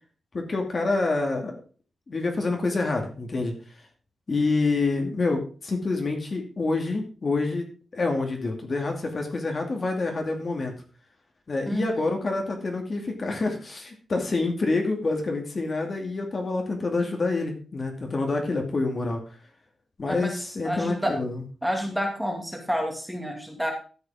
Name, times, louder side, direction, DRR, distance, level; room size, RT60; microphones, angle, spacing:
voice 1, 0.3-1.6 2.1-3.8 4.3-7.7 7.9-10.7 11.5-19.4 20.0-21.4, left 3 dB, 35° left, 3 dB, 2.4 m, -27 dB
voice 2, 11.7-12.1 20.1-20.3 20.6-21.2 21.6-23.7, equal, ahead, 2 dB, 2.4 m, -29 dB
13.0 x 8.6 x 3.6 m, 0.37 s
wide cardioid pair, 170°, 0 cm